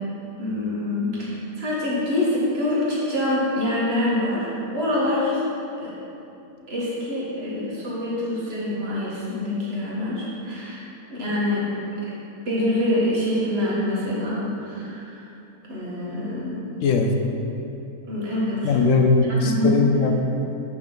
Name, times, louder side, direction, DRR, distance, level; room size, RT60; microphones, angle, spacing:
voice 1, 0.4-5.5 5.8-5.9 6.7-10.8 11.1-11.7 12.5-15.2 15.7-16.6 18.1-18.8 19.4-19.7, left 1 dB, 35° right, -7 dB, 2.0 m, -25 dB
voice 2, 16.8-17.1 18.6-20.3, left 4 dB, 65° left, 3 dB, 0.8 m, -19 dB
8.4 x 5.9 x 4.0 m, 2.8 s
omnidirectional pair, 1.8 m